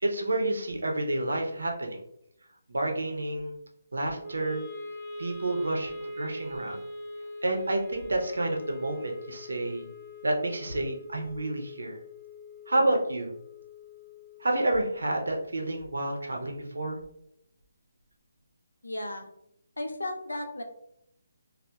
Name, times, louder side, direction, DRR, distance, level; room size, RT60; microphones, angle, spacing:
voice 1, 0.0-2.0 2.7-3.5 3.9-4.6 5.2-6.8 7.4-9.8 10.2-12.0 12.7-13.3 14.4-17.0, right 2 dB, 80° right, 1 dB, 0.5 m, -29 dB
Wind instrument woodwind instrument, 4.2-16.4, left 2 dB, 20° right, 0.6 m, -44 dB
voice 2, 18.8-19.3 19.8-20.6, left 1 dB, 90° left, 4 dB, 0.4 m, -34 dB
2.8 x 2.0 x 2.2 m, 0.76 s
figure-of-eight pair, 150°, 0 cm